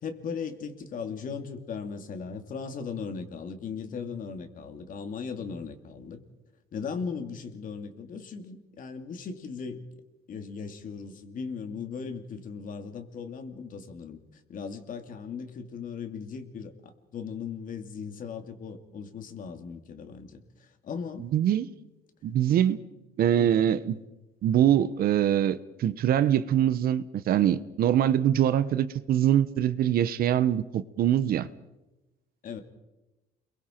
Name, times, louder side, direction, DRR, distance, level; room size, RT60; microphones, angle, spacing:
voice 1, 0.0-6.2 6.7-9.8 10.3-14.2 14.5-21.3 23.4-23.7 32.4-32.6, left 5 dB, 55° left, 2.7 m, -38 dB
voice 2, 21.2-21.7 22.2-22.8 23.2-24.0 24.4-31.5, right 10 dB, 60° right, 1.0 m, -23 dB
29.0 x 22.5 x 4.5 m
cardioid pair, 110°, 17 cm